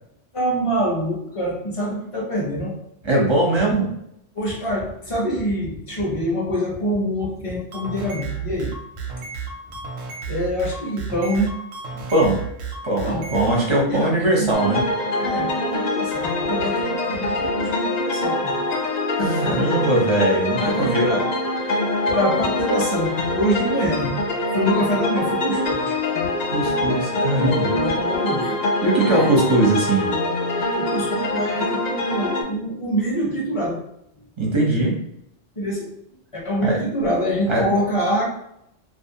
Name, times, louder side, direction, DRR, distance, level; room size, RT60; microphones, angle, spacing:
voice 1, 0.3-2.8 4.3-8.7 10.3-11.6 13.0-14.5 15.2-18.5 19.2-19.6 20.6-21.3 22.1-24.1 24.5-25.9 27.3-28.6 29.0-29.5 30.8-33.8 35.6-35.9 36.3-38.2, equal, 35° left, -3 dB, 0.6 m, -25 dB
voice 2, 3.0-3.9 12.1-12.4 12.8-14.8 19.2-21.2 26.5-27.7 28.8-30.2 34.4-35.0 36.6-36.8 37.5-37.6, right 1 dB, 35° right, -3 dB, 0.5 m, -20 dB
sound 1, 7.6-13.6, right 5 dB, 85° right, 1.0 m, -32 dB
sound 2, 14.5-32.4, left 2 dB, 85° left, 0.3 m, -24 dB
2.5 x 2.3 x 2.7 m, 0.77 s
omnidirectional pair, 1.3 m